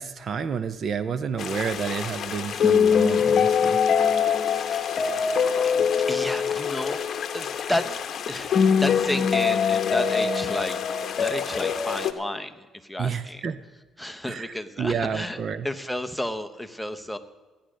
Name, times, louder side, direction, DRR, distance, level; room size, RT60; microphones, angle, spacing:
voice 1, 0.0-3.8 13.0-13.6 14.3-15.7, right 6 dB, 45° right, 14 dB, 0.5 m, -30 dB
sound 1, 1.4-12.1, left 7 dB, 45° left, 0.9 m, -23 dB
voice 2, 4.4-5.1 5.6-7.1 7.3-8.0 8.3-10.8 11.2-13.4 14.0-17.2, left 1 dB, ahead, 7 dB, 0.8 m, -32 dB
15.0 x 10.0 x 6.3 m, 1.2 s
cardioid pair, 130°, 0 cm